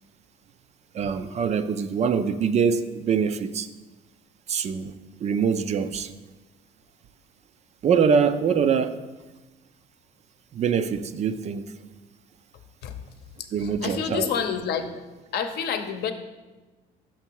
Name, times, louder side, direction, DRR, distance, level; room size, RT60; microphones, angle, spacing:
voice 1, 0.9-3.7 4.5-4.9 5.2-6.1 7.8-9.0 10.5-11.7 13.5-14.3, right 6 dB, 40° right, 0.4 m, -24 dB
voice 2, 13.6-15.0 15.3-16.1, left 7 dB, 65° left, 0.7 m, -28 dB
6.1 x 5.8 x 4.6 m
cardioid pair, 110°, 18 cm